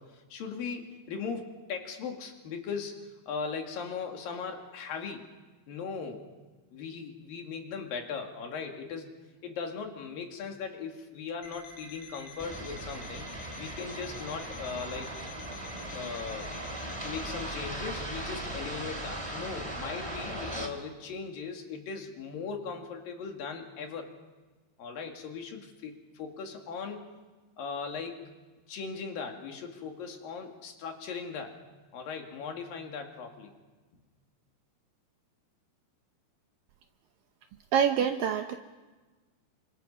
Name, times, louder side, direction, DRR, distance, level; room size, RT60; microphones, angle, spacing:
voice 1, 0.0-5.2 5.7-6.3 6.7-9.1 9.4-13.3 13.6-15.1 15.9-16.6 17.0-24.1 24.8-27.1 27.6-28.2 28.7-31.6 31.9-33.5, left 5 dB, 60° left, 3 dB, 3.7 m, -38 dB
Alarm, 11.4-17.5, left 3 dB, 90° left, 6.1 m, -49 dB
sound 1, 12.4-20.7, right 1 dB, 10° right, 1.7 m, -38 dB
voice 2, 37.7-38.6, right 8 dB, 75° right, 6 dB, 2.1 m, -25 dB
29.5 x 25.0 x 5.6 m, 1.3 s
omnidirectional pair, 4.8 m